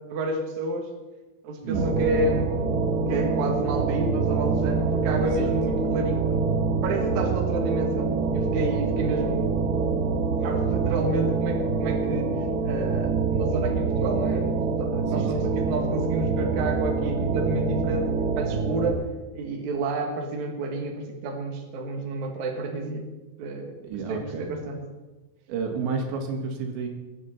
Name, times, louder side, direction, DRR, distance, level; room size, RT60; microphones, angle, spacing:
voice 1, 0.1-0.9 1.4-2.7 3.1-6.5 6.8-9.8 10.4-19.0 19.3-23.1 23.4-23.8 24.1-24.8, right 2 dB, 55° right, 2 dB, 2.5 m, -30 dB
sound 1, 1.7-18.9, right 4 dB, 70° right, 2.7 m, -25 dB
voice 2, 5.2-5.5 15.1-15.5 23.8-24.5 25.5-26.9, right 5 dB, 85° right, 3 dB, 4.0 m, -31 dB
21.5 x 9.3 x 4.3 m, 1.1 s
omnidirectional pair, 5.0 m